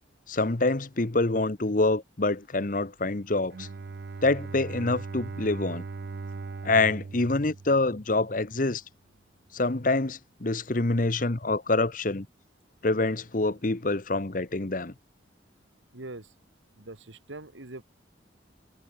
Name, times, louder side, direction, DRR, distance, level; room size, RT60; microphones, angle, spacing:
voice 1, 0.3-3.7 4.2-5.8 6.6-8.8 9.5-12.3 12.8-14.9, left 2 dB, 45° left, 1.0 m, -26 dB
Bowed string instrument, 3.5-8.4, right 4 dB, 60° right, 0.5 m, -39 dB
voice 2, 15.9-16.3 16.8-17.8, right 2 dB, 85° right, 2.2 m, -42 dB
head